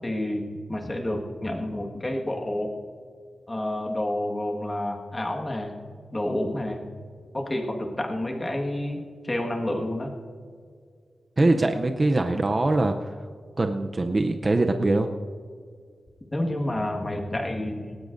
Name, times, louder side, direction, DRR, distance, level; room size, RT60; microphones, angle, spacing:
voice 1, 0.0-0.4 0.7-2.7 3.5-5.8 6.1-6.9 7.3-10.1 16.3-18.0, left 1 dB, 20° left, 2 dB, 1.7 m, -29 dB
voice 2, 11.4-13.1 13.6-15.1, right 2 dB, 25° right, 5 dB, 0.6 m, -23 dB
18.5 x 18.0 x 2.6 m, 2.1 s
wide cardioid pair, 145°, 0 cm